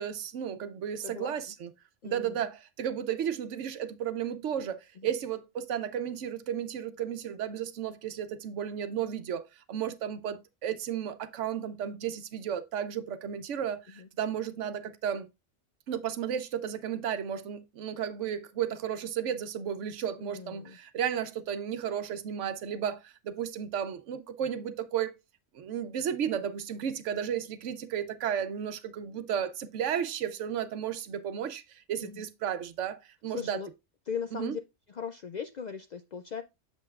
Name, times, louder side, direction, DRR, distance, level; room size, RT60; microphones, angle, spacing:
voice 1, 0.0-1.7 2.0-15.3 15.9-25.2 25.5-33.6 34.3-34.6, right 9 dB, 85° right, 1.0 m, -33 dB
voice 2, 1.0-1.3 2.0-2.3 14.0-14.1 20.2-20.8 32.0-32.2 33.3-33.7 34.1-34.6 34.9-36.4, left 7 dB, 65° left, 0.4 m, -38 dB
7.7 x 7.0 x 2.3 m
omnidirectional pair, 1.2 m